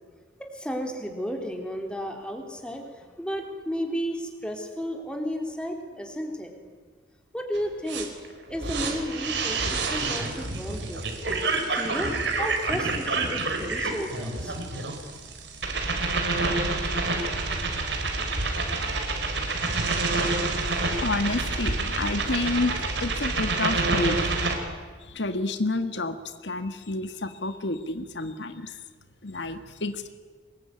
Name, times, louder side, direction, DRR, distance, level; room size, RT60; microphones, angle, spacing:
voice 1, 0.4-2.8 3.2-6.5 7.3-8.1 8.5-11.4 11.7-12.1 12.4-14.6, equal, 5° left, 3 dB, 3.9 m, -33 dB
sound 1, 7.5-7.6 7.9-24.5, right 3 dB, 80° right, 4.4 m, -28 dB
voice 2, 20.5-24.2 25.1-26.1 26.4-28.7 29.2-30.1, left 2 dB, 80° left, 9 dB, 1.6 m, -30 dB
24.5 x 21.5 x 9.8 m, 1.5 s
head